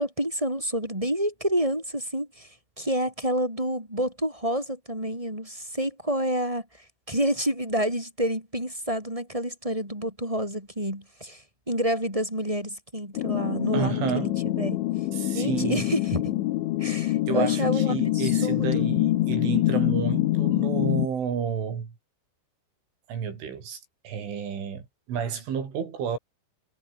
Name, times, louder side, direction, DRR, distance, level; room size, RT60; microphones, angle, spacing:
voice 1, 0.0-2.5 2.8-6.7 7.1-14.8 15.3-16.4 16.8-18.8, equal, 5° right, 7.2 m, -28 dB
sound 1, 13.2-21.1, left 16 dB, 85° left, 3.5 m, -25 dB
voice 2, 13.7-14.3 15.1-15.9 17.3-22.0 23.1-24.8 25.1-26.2, right 7 dB, 85° right, 7.1 m, -31 dB
omnidirectional pair, 5.4 m